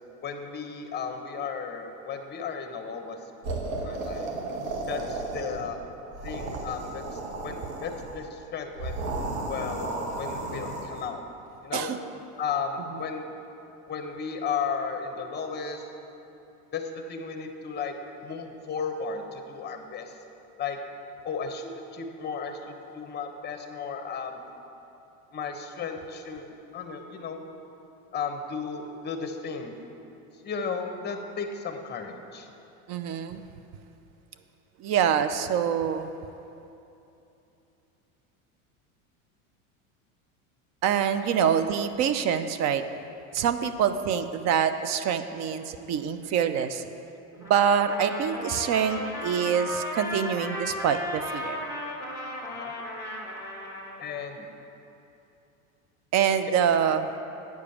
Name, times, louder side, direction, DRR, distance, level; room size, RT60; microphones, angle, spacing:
voice 1, 0.2-3.2 3.8-4.3 4.9-5.8 6.2-9.0 9.5-11.2 11.6-11.9 12.4-13.3 13.9-15.9 16.7-17.9 18.2-20.2 20.6-20.8 21.2-24.4 25.3-26.5 26.7-27.4 28.1-29.8 30.4-32.5 41.3-41.5 52.5-52.7 54.0-54.5 56.6-56.7, left 5 dB, 25° left, 5 dB, 1.0 m, -34 dB
sound 1, 3.4-5.7 6.1-8.2 8.7-11.0, right 2 dB, 75° right, 1.6 m, -34 dB
voice 2, 32.9-33.4 34.8-36.1 40.8-42.8 43.3-46.8 47.4-51.6 56.1-57.2, right 8 dB, 45° right, 11 dB, 0.5 m, -25 dB
Trumpet, 47.4-53.9, left 1 dB, 10° right, 1.4 m, -35 dB
9.4 x 5.0 x 7.0 m, 2.8 s
supercardioid pair, 115°, 40 cm